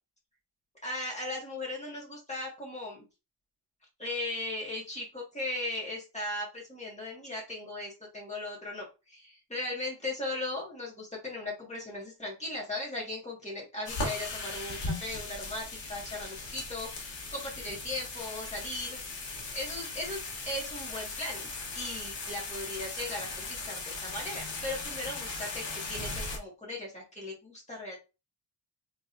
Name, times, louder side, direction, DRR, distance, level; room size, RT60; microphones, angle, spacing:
voice 1, 0.8-3.0 4.0-19.3 19.5-28.0, left 2 dB, 15° left, -3 dB, 1.7 m, -38 dB
sound 1, 13.9-26.4, left 3 dB, 80° left, 1.3 m, -38 dB
3.8 x 3.6 x 2.6 m, 0.29 s
wide cardioid pair, 155°, 44 cm